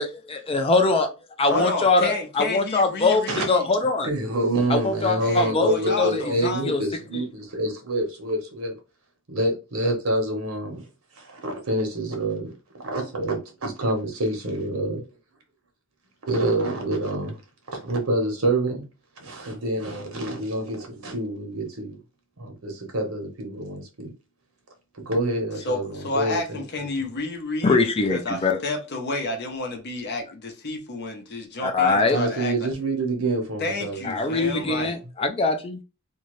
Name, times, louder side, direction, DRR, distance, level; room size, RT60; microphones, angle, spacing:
voice 1, 0.0-1.1 1.4-4.1 4.7-6.8 7.1-7.3 27.6-28.6 31.6-32.2 34.0-35.8, left 3 dB, 25° left, 0.4 m, -22 dB
voice 2, 1.5-3.7 5.2-6.6 25.6-32.7 33.6-35.0, left 2 dB, 55° left, 0.8 m, -30 dB
voice 3, 4.0-8.8 9.3-10.8 11.2-12.5 12.8-15.0 16.3-17.4 17.8-18.8 19.2-22.0 22.4-24.1 25.1-26.6 32.1-34.2 34.4-34.9, right 1 dB, 85° right, 1.1 m, -27 dB
2.6 x 2.4 x 3.1 m
head